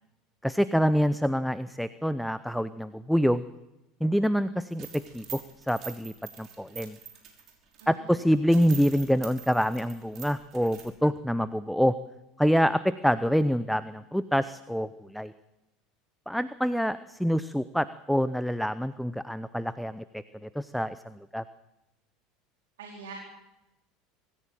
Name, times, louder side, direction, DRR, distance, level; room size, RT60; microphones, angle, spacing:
voice 1, 0.4-3.4 4.0-5.4 5.7-7.0 7.9-12.0 12.4-15.3 16.3-20.0 20.5-21.4, equal, ahead, 15 dB, 0.7 m, -26 dB
sound 1, 4.7-7.8 8.2-8.3 8.5-10.9, right 9 dB, 40° right, 5.4 m, -45 dB
voice 2, 7.8-8.2 22.8-23.1, right 5 dB, 65° right, 0 dB, 4.2 m, -44 dB
25.0 x 15.0 x 7.5 m, 0.95 s
figure-of-eight pair, 70°, 0 cm